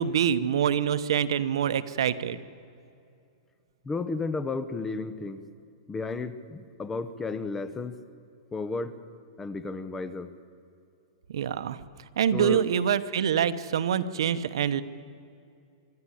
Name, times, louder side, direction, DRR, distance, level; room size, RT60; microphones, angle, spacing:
voice 1, 0.0-2.4 11.3-11.8 12.2-14.8, right 8 dB, 75° right, 13 dB, 1.0 m, -25 dB
voice 2, 3.8-5.4 5.9-8.0 8.5-9.0 9.4-10.3 12.3-12.6, left 4 dB, 10° left, 13 dB, 0.8 m, -33 dB
25.0 x 12.5 x 10.0 m, 2.5 s
supercardioid pair, 165°, 3 cm